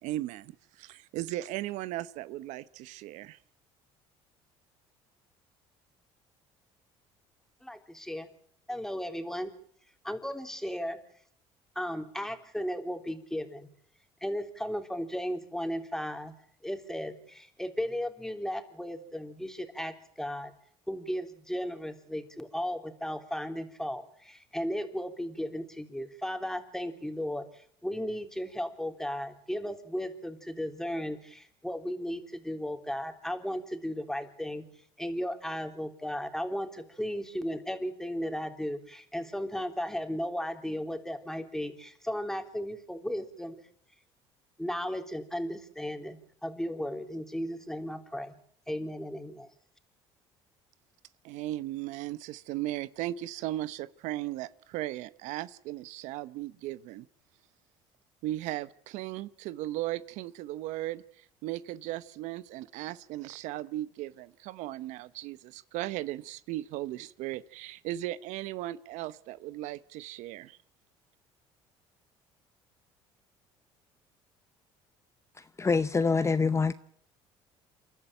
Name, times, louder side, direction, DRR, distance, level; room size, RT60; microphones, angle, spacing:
voice 1, 0.0-3.4 51.2-57.1 58.2-70.6, right 15 dB, 75° right, 0.8 m, -37 dB
voice 2, 7.6-8.3 8.7-9.5 10.0-11.0 11.7-13.7 14.2-16.3 16.6-20.5 20.9-34.6 35.0-43.6 44.6-48.3 48.7-49.5, equal, 5° left, 3.4 m, -35 dB
voice 3, 75.4-76.7, left 4 dB, 25° left, 0.9 m, -26 dB
28.5 x 12.0 x 9.0 m
supercardioid pair, 80°, 13 cm